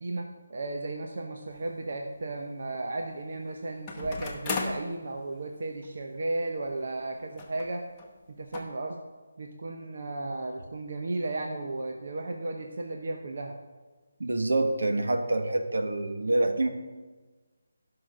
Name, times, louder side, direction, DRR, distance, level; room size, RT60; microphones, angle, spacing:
voice 1, 0.0-7.8 8.3-9.0 9.4-13.6, right 2 dB, 55° right, 2 dB, 0.9 m, -34 dB
sound 1, 1.5-1.6 3.9-4.9 5.8-5.9 6.2-6.3 7.4-7.7 8.0-8.1 8.5-8.6, left 4 dB, 15° left, 1.0 m, -34 dB
voice 2, 14.2-16.7, right 2 dB, 75° right, 5 dB, 1.4 m, -26 dB
11.5 x 5.9 x 6.4 m, 1.3 s
figure-of-eight pair, 170°, 0 cm